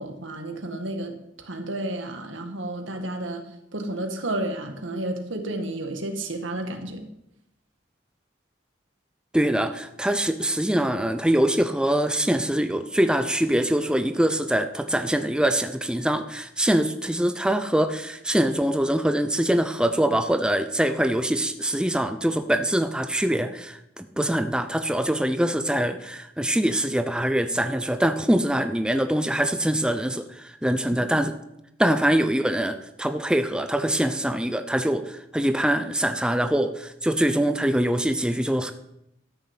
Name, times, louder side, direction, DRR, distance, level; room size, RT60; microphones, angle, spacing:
voice 1, 0.0-3.5 3.7-7.1 31.1-31.2, right 1 dB, 85° right, 5 dB, 2.1 m, -31 dB
voice 2, 9.3-31.3 31.8-38.7, right 1 dB, 5° right, 8 dB, 0.6 m, -24 dB
13.0 x 6.8 x 8.3 m, 0.81 s
head